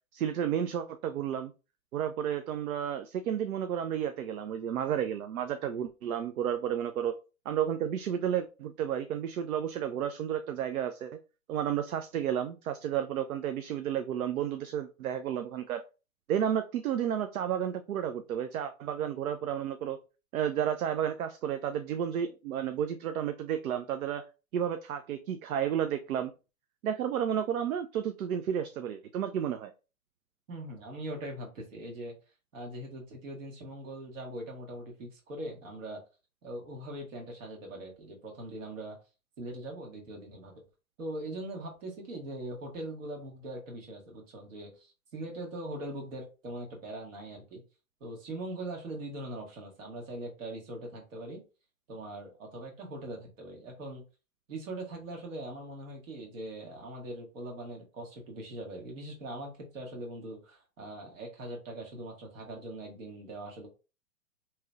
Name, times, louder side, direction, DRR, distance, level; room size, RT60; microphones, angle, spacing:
voice 1, 0.1-1.5 1.9-7.1 7.5-11.2 11.5-15.8 16.3-20.0 20.3-24.2 24.5-26.3 26.8-29.7, right 9 dB, 80° right, 8 dB, 0.5 m, -32 dB
voice 2, 30.5-32.1 32.5-36.0 36.4-39.0 39.4-40.6 41.0-47.6 48.0-51.4 51.9-54.0 54.5-63.7, right 1 dB, 65° right, 1 dB, 1.6 m, -41 dB
3.1 x 2.9 x 2.3 m, 0.31 s
hypercardioid pair, 120°, 43 cm